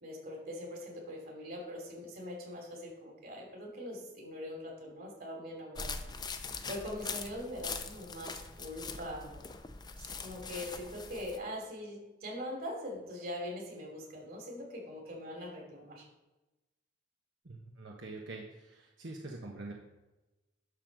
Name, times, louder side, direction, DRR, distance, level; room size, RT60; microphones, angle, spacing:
voice 1, 0.0-6.0 6.7-9.5 10.0-16.1, left 1 dB, 50° right, -1 dB, 2.9 m, -42 dB
sound 1, 5.8-11.4, left 5 dB, 20° left, 0.6 m, -42 dB
voice 2, 17.4-19.7, right 2 dB, 85° right, 0 dB, 1.2 m, -45 dB
11.5 x 3.9 x 6.5 m, 1.0 s
head